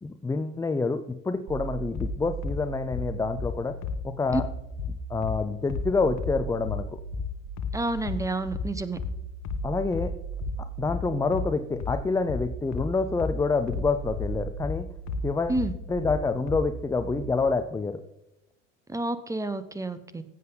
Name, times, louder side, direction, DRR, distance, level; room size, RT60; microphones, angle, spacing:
voice 1, 0.0-3.7 4.2-4.5 5.1-7.0 9.6-10.1 10.8-14.9 15.2-15.6 15.9-18.0, left 4 dB, 10° left, 9 dB, 0.5 m, -27 dB
sound 1, 1.5-17.5, right 6 dB, 25° right, 1.6 m, -38 dB
sound 2, 1.9-16.7, left 7 dB, 45° left, 1.0 m, -33 dB
voice 2, 7.7-9.0 15.5-15.7 18.9-20.2, right 2 dB, 10° right, 12 dB, 0.9 m, -29 dB
15.5 x 7.9 x 4.0 m, 0.88 s
hypercardioid pair, 80°, 40 cm